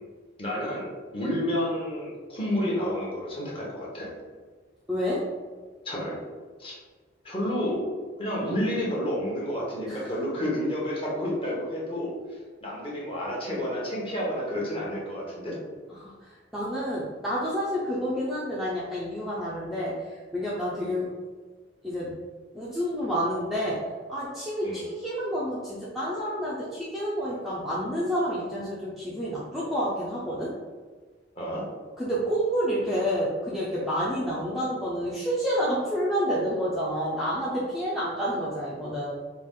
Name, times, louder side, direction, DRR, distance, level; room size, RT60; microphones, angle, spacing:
voice 1, 0.4-4.1 5.8-6.2 6.6-6.8 7.2-7.8 8.2-15.6 24.6-24.9 31.3-31.6, equal, 30° left, -4 dB, 1.1 m, -30 dB
voice 2, 4.9-5.2 9.9-10.1 15.9-16.1 16.5-19.9 20.3-21.1 21.8-22.1 22.5-23.8 24.1-30.5 32.0-39.1, equal, ahead, -8 dB, 0.5 m, -29 dB
4.8 x 2.4 x 3.6 m, 1.4 s
head